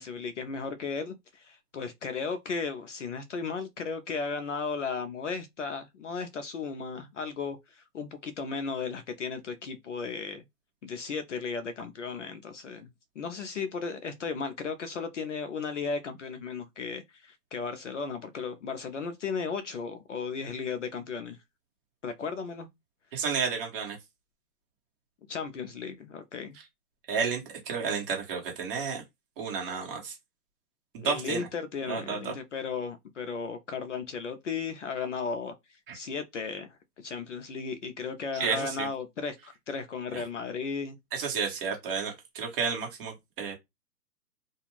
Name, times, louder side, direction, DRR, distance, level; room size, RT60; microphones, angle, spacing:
voice 1, 0.0-10.4 10.8-12.9 13.2-21.4 22.0-22.7 25.3-26.6 31.0-35.5 35.9-41.0, left 5 dB, 50° left, 0.5 m, -35 dB
voice 2, 23.1-24.0 27.1-29.0 29.4-30.1 30.9-31.5 31.9-32.3 35.9-36.0 38.3-38.9 40.1-40.2 41.1-43.5, right 6 dB, 35° right, 1.2 m, -31 dB
2.4 x 2.3 x 3.0 m
hypercardioid pair, 150°, 49 cm